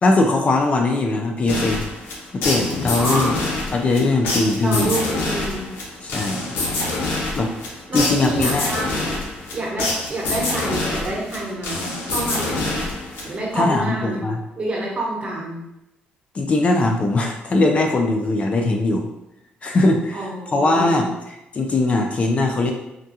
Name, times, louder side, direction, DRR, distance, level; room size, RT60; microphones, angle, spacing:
voice 1, 0.0-1.8 2.3-3.4 3.7-4.9 6.0-6.6 7.3-7.5 7.9-8.7 13.5-14.4 16.3-19.1 19.6-21.1 21.5-22.7, left 2 dB, 35° left, 2 dB, 0.4 m, -20 dB
sound 1, 1.5-13.6, left 2 dB, 80° left, 0.7 m, -26 dB
voice 2, 3.0-3.4 4.6-5.7 7.9-9.2 9.5-12.8 13.2-14.2 14.5-15.6 20.1-21.1, right 1 dB, 35° right, -3 dB, 1.1 m, -27 dB
3.6 x 2.2 x 2.7 m, 0.88 s
cardioid pair, 100°, 4 cm